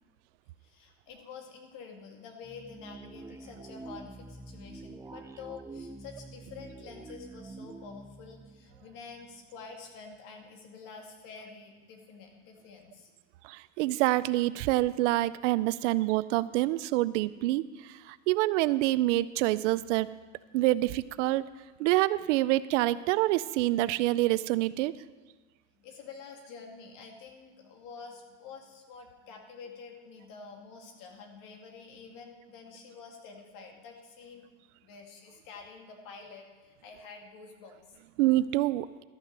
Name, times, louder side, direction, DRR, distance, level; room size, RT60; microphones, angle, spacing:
voice 1, 0.6-13.1 25.8-34.5 34.8-38.0, left 5 dB, 65° left, 2 dB, 2.2 m, -48 dB
sound 1, 2.4-9.6, right 3 dB, 10° right, 0.3 m, -47 dB
voice 2, 13.4-17.7 18.1-20.1 20.5-21.4 21.8-24.9 38.2-38.9, right 17 dB, 90° right, 17 dB, 0.5 m, -26 dB
13.0 x 6.0 x 6.6 m, 1.3 s
supercardioid pair, 110°, 35 cm